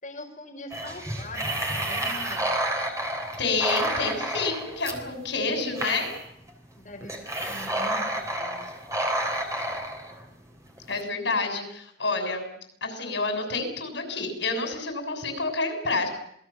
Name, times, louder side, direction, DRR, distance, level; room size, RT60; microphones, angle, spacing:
voice 1, 0.0-2.5 6.8-8.7 11.5-11.7, left 2 dB, 45° left, 1 dB, 5.2 m, -43 dB
sound 1, 0.7-11.0, right 1 dB, 15° right, 3.4 m, -30 dB
voice 2, 3.4-6.1 10.9-12.5 12.8-16.1, left 3 dB, 80° left, 5 dB, 6.9 m, -28 dB
27.0 x 19.0 x 7.2 m, 0.69 s
head